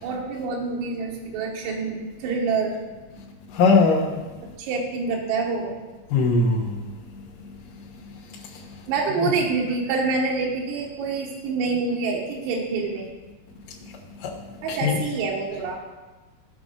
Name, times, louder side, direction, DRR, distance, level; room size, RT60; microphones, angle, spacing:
voice 1, 0.0-2.8 4.6-5.7 8.9-13.1 14.6-15.8, right 4 dB, 90° right, -2 dB, 4.0 m, -26 dB
voice 2, 3.5-4.2 6.1-6.8 14.2-14.3 14.7-15.0, left 3 dB, 70° left, -5 dB, 2.1 m, -20 dB
17.0 x 5.9 x 3.9 m, 1.2 s
omnidirectional pair, 5.8 m